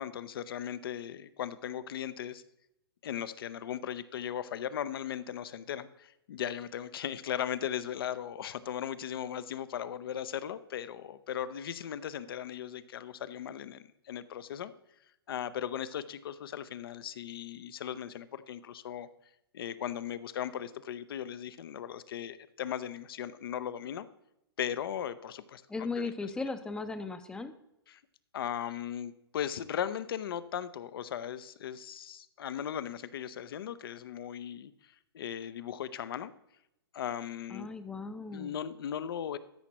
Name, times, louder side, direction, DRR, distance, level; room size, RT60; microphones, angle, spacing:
voice 1, 0.0-2.4 3.0-14.7 15.3-19.1 19.5-24.1 24.6-25.6 26.0-26.1 27.9-28.0 28.3-36.3 36.9-37.7 38.3-39.4, left 9 dB, 60° left, 15 dB, 0.6 m, -37 dB
voice 2, 25.7-27.5 37.5-38.5, left 4 dB, 5° left, 10 dB, 0.5 m, -37 dB
13.0 x 5.9 x 3.0 m, 0.84 s
hypercardioid pair, 125°, 13 cm